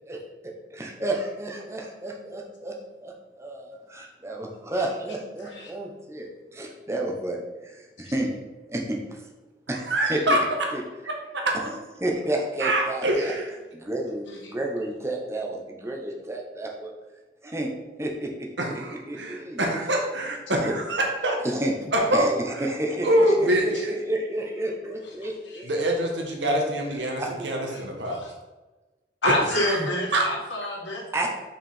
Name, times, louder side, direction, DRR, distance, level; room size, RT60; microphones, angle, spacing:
voice 1, 0.1-2.8 3.0-8.3 8.7-9.2 9.7-10.4 10.7-10.8 11.6-11.7 12.0-13.3 13.7-16.9 17.4-17.7 18.0-18.5 19.1-19.6 20.5-20.7 21.4-26.1 27.2-27.8 31.1-31.3, right 1 dB, 15° right, 1 dB, 1.0 m, -31 dB
voice 2, 5.4-5.7 8.0-8.1 23.7-23.8 25.2-25.6 27.7-28.3 29.2-31.0, left 1 dB, 85° left, -3 dB, 2.2 m, -28 dB
voice 3, 9.9-10.4 11.3-11.4 12.6-13.5 18.6-21.4 21.9-22.4 23.0-23.6 25.6-28.2 29.5-29.6 30.1-30.2, right 1 dB, 80° right, 1 dB, 1.6 m, -24 dB
5.6 x 4.8 x 5.6 m, 1.2 s
head